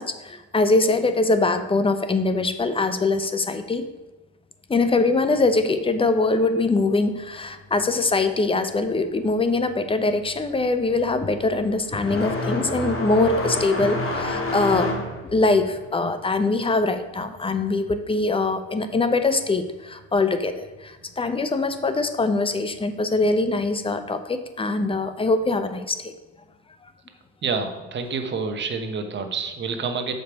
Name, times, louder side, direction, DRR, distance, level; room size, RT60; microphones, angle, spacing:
voice 1, 0.0-3.9 4.7-14.9 15.3-26.1, left 3 dB, 20° left, 10 dB, 0.7 m, -23 dB
sound 1, 9.6-9.7 10.0-18.4 18.7-19.7 20.7-20.8 21.6-21.7 23.4-23.6, left 1 dB, 45° left, 2.0 m, -29 dB
voice 2, 27.4-30.1, right 5 dB, 35° right, 6 dB, 1.1 m, -28 dB
6.5 x 5.2 x 4.6 m, 1.2 s
supercardioid pair, 95°, 30 cm